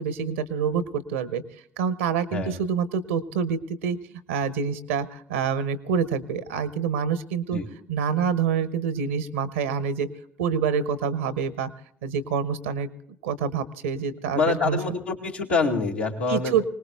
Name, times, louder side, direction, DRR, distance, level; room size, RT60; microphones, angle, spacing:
voice 1, 0.0-1.4 1.8-4.0 4.3-7.6 7.9-10.1 10.4-11.7 12.0-12.9 13.2-14.8 16.3-16.6, right 6 dB, 75° right, 15 dB, 0.9 m, -26 dB
voice 2, 14.3-16.5, left 4 dB, 80° left, -2 dB, 2.0 m, -25 dB
25.5 x 19.5 x 2.3 m, 0.63 s
figure-of-eight pair, 50°, 6 cm